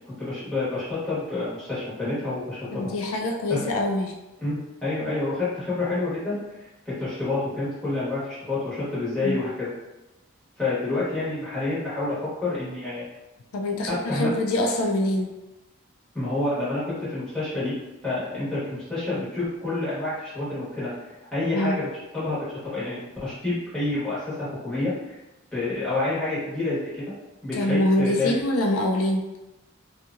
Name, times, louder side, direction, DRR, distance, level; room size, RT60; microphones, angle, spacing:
voice 1, 0.2-2.9 3.5-3.7 4.4-9.7 10.6-13.1 13.9-14.4 16.1-17.8 18.0-21.9 22.1-25.2 25.5-27.0 27.4-28.4, left 2 dB, 5° left, -12 dB, 1.2 m, -28 dB
voice 2, 2.7-4.1 9.2-9.4 13.5-15.3 21.5-21.8 27.6-29.2, left 1 dB, 85° left, 2 dB, 0.4 m, -24 dB
2.8 x 2.3 x 2.5 m, 1.0 s
head